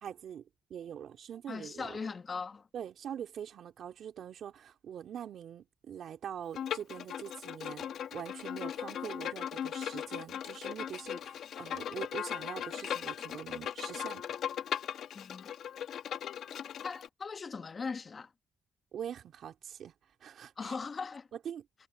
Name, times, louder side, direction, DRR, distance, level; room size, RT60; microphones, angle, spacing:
voice 1, 0.0-0.4 0.7-2.0 2.7-14.2 18.9-19.9 20.2-20.8 21.4-21.6, right 9 dB, 65° right, 2.9 m, -43 dB
voice 2, 1.5-2.7 15.1-15.5 16.8-18.3 20.6-21.3, left 5 dB, 35° left, 1.2 m, -39 dB
Bowed string instrument, 6.5-17.1, left 9 dB, 70° left, 1.2 m, -38 dB
cardioid pair, 90°, 0 cm